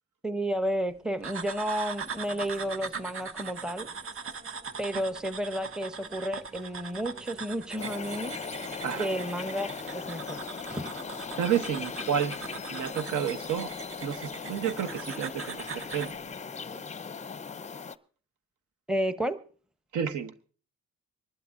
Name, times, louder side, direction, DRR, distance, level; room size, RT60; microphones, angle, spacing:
voice 1, 0.2-3.9 4.8-8.4 9.0-9.7 9.9-10.4 10.7-10.9 18.9-19.4, equal, 5° right, 0.8 m, -31 dB
sound 1, 1.2-16.2, right 5 dB, 45° right, 0.9 m, -41 dB
sound 2, 2.0-17.3, equal, 25° right, 6.9 m, -54 dB
sound 3, 7.8-18.0, left 5 dB, 25° left, 0.6 m, -39 dB
voice 2, 11.4-12.3 12.7-13.7 14.0-16.1 19.9-20.3, right 9 dB, 75° right, 1.1 m, -30 dB
24.5 x 12.0 x 2.5 m
cardioid pair, 90°, 30 cm